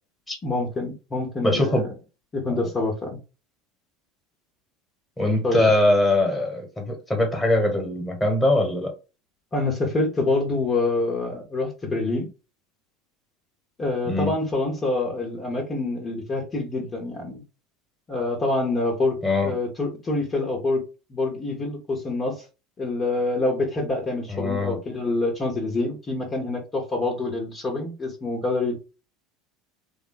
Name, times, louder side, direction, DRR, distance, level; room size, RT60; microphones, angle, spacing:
voice 1, 0.4-1.9 2.3-3.2 5.4-5.6 9.5-12.3 13.8-17.4 18.1-20.8 21.1-22.4 22.8-28.7, left 2 dB, 30° left, -1 dB, 1.2 m, -26 dB
voice 2, 1.4-1.8 5.2-8.9 14.0-14.3 19.2-19.5 24.3-24.8, left 1 dB, 10° left, 3 dB, 1.5 m, -22 dB
3.5 x 2.3 x 4.0 m, 0.31 s
figure-of-eight pair, 75°, 0 cm